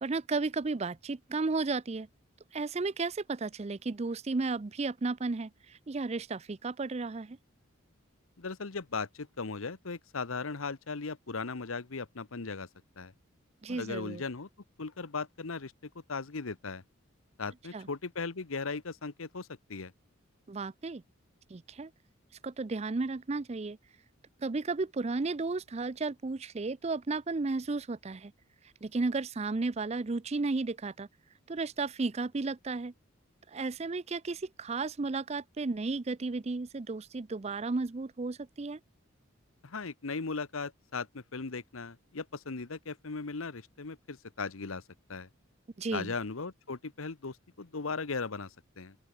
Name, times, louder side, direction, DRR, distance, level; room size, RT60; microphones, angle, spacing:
voice 1, 0.0-2.1 2.5-7.4 13.6-14.2 17.7-17.9 20.5-21.0 21.5-21.9 22.4-23.8 24.4-28.3 28.8-31.1 31.5-32.9 33.5-38.8 45.8-46.1, right 3 dB, 30° right, 0.5 m, -33 dB
voice 2, 8.4-12.7 13.0-13.1 13.7-14.5 14.8-15.7 16.1-16.8 17.4-19.9 39.6-44.8 45.1-45.3 45.9-48.9, left 4 dB, 90° left, 1.1 m, -37 dB
open air
head